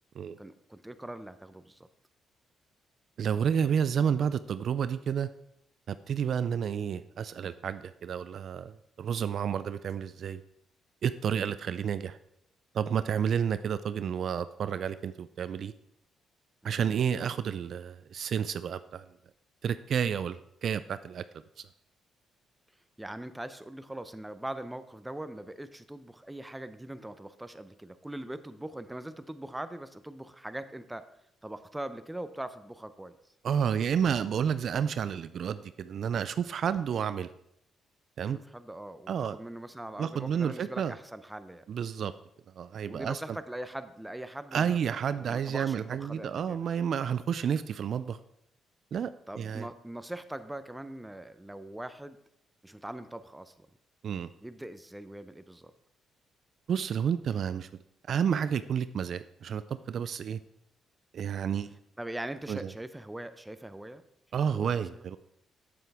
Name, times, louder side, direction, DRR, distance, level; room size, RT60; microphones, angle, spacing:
voice 1, 0.4-1.9 16.6-17.0 23.0-31.1 31.4-33.2 38.3-41.6 42.9-44.8 45.1-46.6 49.3-52.2 52.6-53.7 54.4-55.7 62.0-64.0 64.4-65.0, right 1 dB, 10° right, 11 dB, 0.6 m, -41 dB
voice 2, 3.2-5.3 5.9-10.4 11.0-12.2 12.7-15.7 16.6-19.0 19.6-21.2 21.6-21.7 33.4-37.3 38.2-38.4 39.1-39.4 40.0-40.9 41.7-42.1 42.6-43.4 44.5-48.2 48.9-49.7 54.0-54.3 56.7-57.7 58.1-60.4 61.1-61.7 62.5-62.7 64.3-65.2, right 8 dB, 60° right, 13 dB, 0.3 m, -30 dB
7.9 x 7.5 x 3.5 m, 0.76 s
cardioid pair, 90°, 0 cm